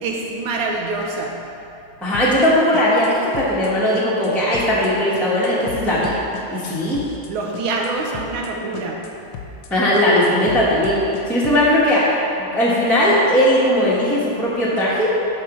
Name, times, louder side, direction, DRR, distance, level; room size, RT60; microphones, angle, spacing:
voice 1, 0.0-1.4 7.3-9.0, right 3 dB, 75° right, 0 dB, 1.7 m, -25 dB
voice 2, 2.0-6.2 6.5-7.0 9.7-12.1 12.4-15.2, left 1 dB, ahead, -8 dB, 0.9 m, -18 dB
sound 1, 2.1-2.5 2.7-3.1 3.3-3.7 3.9-4.3 4.5-4.9 5.1-7.3 7.5-7.9 8.1-8.5 8.7-9.1 9.3-9.7 9.9-11.6, left 6 dB, 75° left, 1.5 m, -35 dB
9.1 x 3.9 x 6.1 m, 2.8 s
omnidirectional pair, 2.3 m